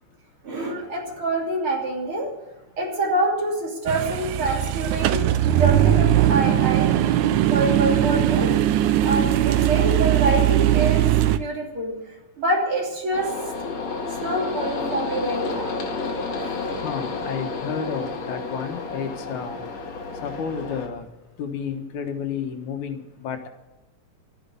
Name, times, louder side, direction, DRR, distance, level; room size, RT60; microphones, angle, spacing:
voice 1, 0.4-2.3 2.8-5.2 5.6-7.0 7.5-8.5 9.0-11.1 11.4-11.9 12.4-13.3 14.2-15.8 16.4-16.6, right 1 dB, 45° right, -1 dB, 3.8 m, -26 dB
sound 1, 3.9-11.4, right 12 dB, 90° right, 2.2 m, -20 dB
sound 2, 13.1-20.9, left 3 dB, 65° left, 3.0 m, -31 dB
voice 2, 16.7-19.6 20.2-21.1 21.4-23.5, left 6 dB, 90° left, 6 dB, 2.8 m, -31 dB
13.0 x 10.0 x 9.5 m, 1.0 s
omnidirectional pair, 3.3 m